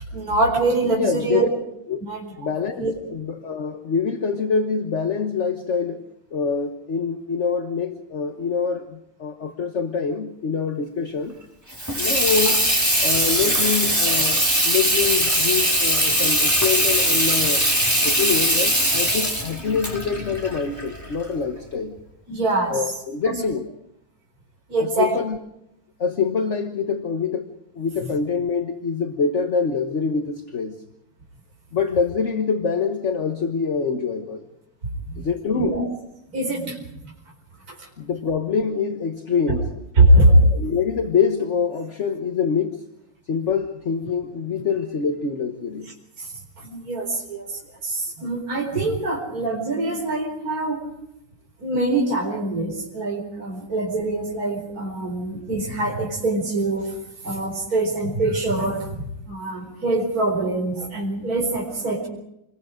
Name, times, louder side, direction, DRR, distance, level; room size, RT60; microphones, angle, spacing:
voice 1, 0.1-1.5 2.0-2.3 2.8-2.9 22.3-22.8 24.7-25.1 28.0-28.1 35.1-35.2 35.5-35.8 36.3-37.1 37.7-37.8 39.5-39.6 40.0-40.4 46.2-46.3 46.6-50.8 51.6-56.9 57.2-62.1, right 2 dB, 50° right, 4.9 m, -23 dB
voice 2, 0.9-1.5 1.9-2.0 2.4-6.0 6.3-11.4 11.9-12.6 13.0-17.6 18.0-22.0 22.7-23.7 24.8-25.4 26.0-30.8 31.7-34.5 35.2-35.8 38.0-39.7 40.5-42.8 43.3-45.9, left 5 dB, 40° left, 1.4 m, -25 dB
Water tap faucet / Sink (filling or washing), 11.7-21.3, equal, 10° right, 4.6 m, -21 dB
28.0 x 21.5 x 5.1 m
omnidirectional pair, 2.0 m